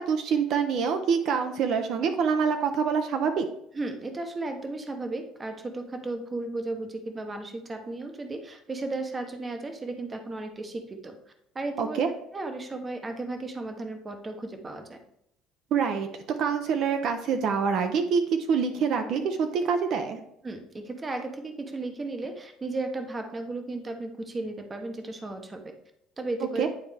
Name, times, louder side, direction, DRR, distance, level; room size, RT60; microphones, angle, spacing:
voice 1, 0.0-3.5 11.8-12.1 15.7-18.2 18.5-20.2 26.6-26.7, right 6 dB, 50° right, 7 dB, 0.6 m, -26 dB
voice 2, 3.7-11.2 11.5-12.0 12.3-15.0 20.4-25.7 26.2-26.7, right 2 dB, 20° right, 6 dB, 0.8 m, -35 dB
9.4 x 4.1 x 3.3 m, 0.77 s
cardioid pair, 150°, 0 cm